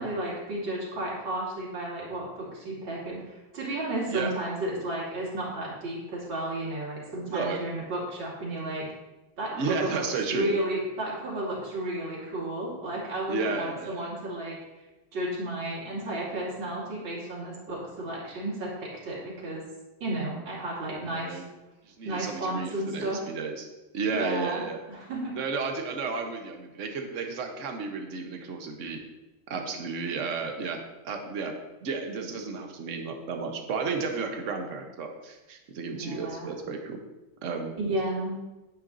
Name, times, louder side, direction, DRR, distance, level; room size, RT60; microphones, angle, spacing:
voice 1, 0.0-8.9 9.4-14.6 15.1-19.6 20.0-21.4 22.1-23.2 24.1-25.4 35.9-36.5 37.8-38.4, right 1 dB, 65° right, -5 dB, 3.4 m, -33 dB
voice 2, 7.3-7.6 9.5-10.5 13.3-14.1 21.1-21.4 21.9-23.7 23.9-24.8 25.3-29.0 29.5-31.5 31.8-37.0 37.4-37.7, right 4 dB, 45° right, 3 dB, 1.2 m, -33 dB
10.5 x 9.3 x 2.7 m, 1.1 s
omnidirectional pair, 2.3 m